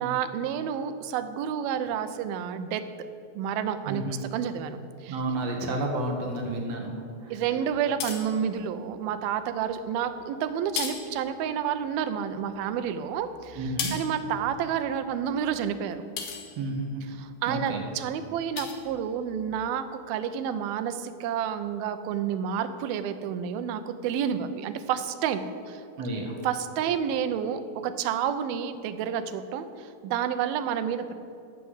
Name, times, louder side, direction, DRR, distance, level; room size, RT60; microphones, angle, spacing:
voice 1, 0.0-2.8 3.4-5.2 7.3-16.0 17.2-25.8 26.4-31.1, right 8 dB, 80° right, 9 dB, 2.5 m, -30 dB
voice 2, 3.9-4.2 5.1-7.3 13.6-13.9 16.6-17.0 17.5-17.9 26.0-26.4, right 1 dB, 60° right, 1 dB, 1.8 m, -31 dB
sound 1, 7.7-9.0 9.7-10.2 10.5-12.0 12.3-17.2 17.7-18.0 18.3-19.7, left 6 dB, 75° left, 2.9 m, -39 dB
13.5 x 5.8 x 8.0 m, 2.5 s
omnidirectional pair, 4.4 m